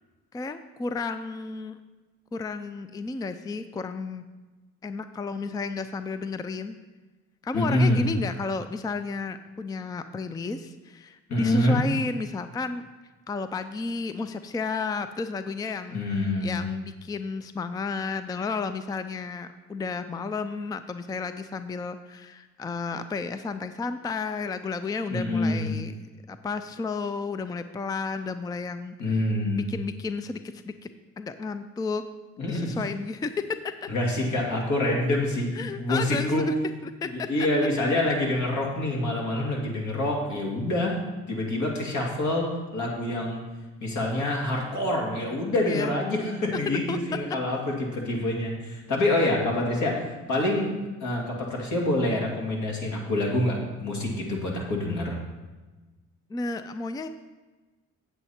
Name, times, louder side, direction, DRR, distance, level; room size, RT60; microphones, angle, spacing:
voice 1, 0.3-1.8 2.3-4.2 4.8-6.8 7.4-12.9 13.3-29.2 29.6-30.7 31.2-32.0 32.5-33.3 33.8-33.9 35.1-35.2 35.5-36.5 36.8-37.3 45.7-46.0 46.7-47.0 56.3-57.1, left 4 dB, 15° left, 10 dB, 0.4 m, -32 dB
voice 2, 7.5-8.0 11.3-11.8 15.9-16.5 25.1-25.8 29.0-29.7 32.4-32.8 33.9-36.5 37.0-41.0 41.3-43.4 43.8-50.0 50.3-50.7 51.0-55.2, left 1 dB, 70° left, -1 dB, 2.3 m, -26 dB
8.0 x 7.9 x 4.3 m, 1.2 s
cardioid pair, 90°, 30 cm